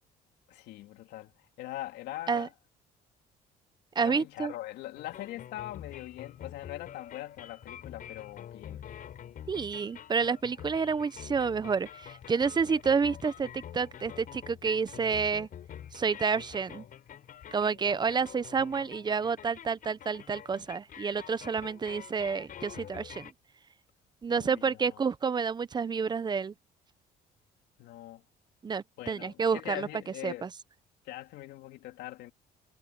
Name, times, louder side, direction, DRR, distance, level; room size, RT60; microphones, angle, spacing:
voice 1, 0.5-1.3 1.6-2.5 4.0-8.8 12.4-12.5 24.3-25.0 27.8-28.2 29.0-30.5 31.0-32.3, left 15 dB, 85° left, 3.4 m, -42 dB
voice 2, 4.0-4.5 9.5-15.5 15.9-16.8 17.5-23.3 24.2-26.5 28.6-29.9 30.2-30.5, right 5 dB, 25° right, 0.9 m, -29 dB
sound 1, 5.0-23.3, left 9 dB, 55° left, 5.8 m, -47 dB
cardioid pair, 110°, 17 cm